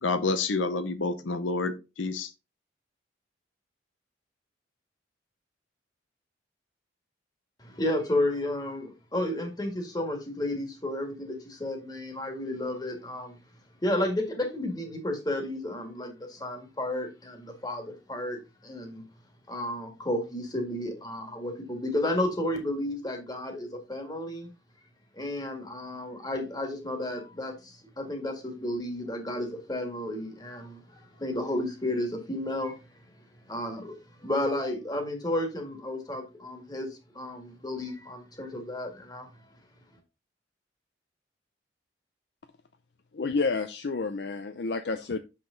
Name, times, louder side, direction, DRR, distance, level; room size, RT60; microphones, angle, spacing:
voice 1, 0.0-2.3, left 3 dB, 85° left, 11 dB, 0.8 m, -28 dB
voice 2, 7.6-13.4 13.8-19.0 19.5-24.5 25.1-32.8 33.5-39.3, left 1 dB, 20° left, 4 dB, 1.8 m, -32 dB
voice 3, 43.1-45.2, left 4 dB, 60° left, 9 dB, 0.5 m, -30 dB
6.8 x 5.9 x 3.8 m, 0.27 s
head